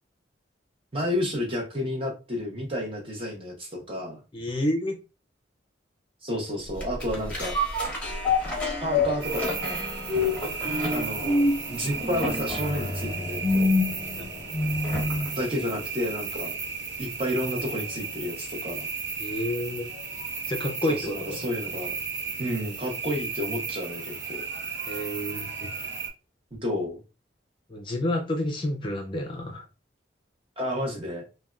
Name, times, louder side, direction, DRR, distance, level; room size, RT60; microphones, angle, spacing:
voice 1, 0.9-4.2 6.2-7.6 8.8-9.8 10.9-11.4 11.7-13.7 15.3-16.5 17.0-18.9 20.9-21.9 22.4-24.4 26.5-27.0 30.6-31.3, equal, 30° right, 0.8 m, -31 dB
voice 2, 4.3-5.0 14.2-14.3 19.2-19.9 20.5-21.4 24.9-25.7 27.7-29.6, left 1 dB, 25° left, 0.5 m, -29 dB
sound 1, 6.8-15.4 15.8-15.9, left 2 dB, 10° left, 0.9 m, -27 dB
sound 2, 9.2-26.1, right 5 dB, 85° right, 0.8 m, -35 dB
3.4 x 2.2 x 2.3 m
head